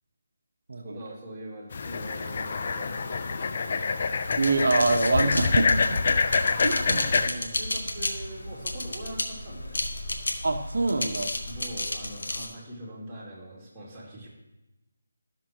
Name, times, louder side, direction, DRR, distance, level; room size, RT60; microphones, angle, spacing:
voice 1, 0.8-3.8 6.7-9.8 11.5-14.3, right 1 dB, 10° right, -8 dB, 2.3 m, -42 dB
sound 1, 1.7-7.3, left 4 dB, 45° left, 0.4 m, -26 dB
sound 2, 4.2-12.5, left 1 dB, 75° left, 1.0 m, -33 dB
voice 2, 4.4-6.0 6.6-7.0 10.4-11.3, right 3 dB, 70° right, 3 dB, 0.8 m, -25 dB
12.5 x 6.1 x 2.9 m, 0.98 s
figure-of-eight pair, 165°, 0 cm